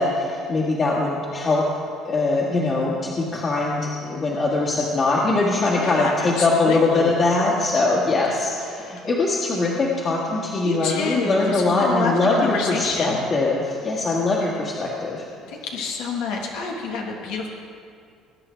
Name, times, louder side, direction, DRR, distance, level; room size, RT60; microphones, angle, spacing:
voice 1, 0.0-1.6 2.1-15.3, left 3 dB, 35° left, -5 dB, 1.8 m, -22 dB
voice 2, 5.7-7.1 10.6-13.2 15.5-17.5, left 4 dB, 90° left, -1 dB, 1.5 m, -28 dB
20.5 x 9.0 x 3.4 m, 2.3 s
cardioid pair, 125°, 0 cm